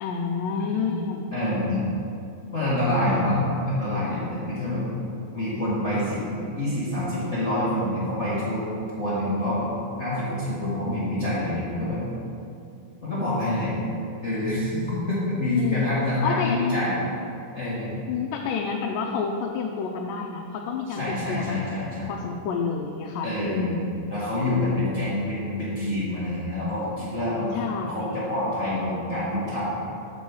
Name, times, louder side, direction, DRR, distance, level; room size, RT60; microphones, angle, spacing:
voice 1, 0.0-1.3 15.6-15.9 16.2-16.6 18.1-21.7 22.1-23.9 27.5-28.1, left 5 dB, 90° left, 1 dB, 2.2 m, -29 dB
voice 2, 0.6-1.0 1.3-1.8 2.5-4.8 5.3-6.2 6.5-8.6 9.0-9.7 10.0-12.0 13.0-13.7 14.2-17.0 17.5-18.0 20.9-22.1 23.2-29.7, left 1 dB, 45° left, -10 dB, 0.9 m, -26 dB
7.4 x 4.6 x 7.0 m, 2.6 s
omnidirectional pair, 3.7 m